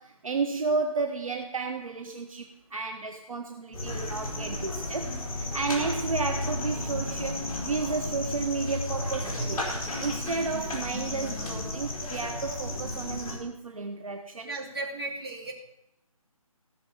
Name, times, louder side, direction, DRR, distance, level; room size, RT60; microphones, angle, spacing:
voice 1, 0.0-14.5, right 4 dB, 65° right, 6 dB, 1.0 m, -32 dB
sound 1, 3.7-13.4, left 1 dB, 15° left, 3.7 m, -33 dB
voice 2, 14.4-15.5, right 2 dB, 40° right, -1 dB, 2.7 m, -35 dB
16.5 x 6.8 x 5.6 m, 0.83 s
figure-of-eight pair, 165°, 19 cm